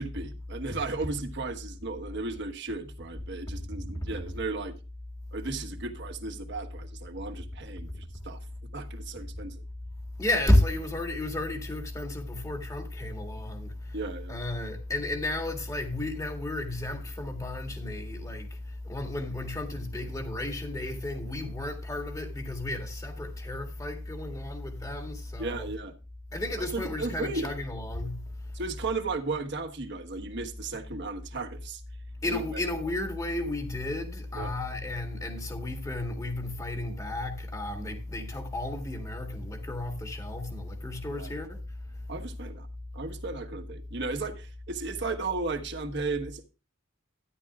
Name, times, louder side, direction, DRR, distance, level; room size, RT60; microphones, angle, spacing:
voice 1, 0.0-4.8 5.3-8.4 8.7-9.6 13.9-14.4 25.4-25.9 26.6-27.5 28.5-31.8 32.3-32.4 34.3-34.5 41.1-41.3 42.1-42.7 42.9-46.5, right 3 dB, 60° right, 1.3 m, -35 dB
voice 2, 10.2-14.0 14.3-25.7 26.3-28.5 32.2-41.6 41.9-42.0, left 1 dB, 15° left, 1.8 m, -32 dB
13.0 x 10.5 x 2.4 m
head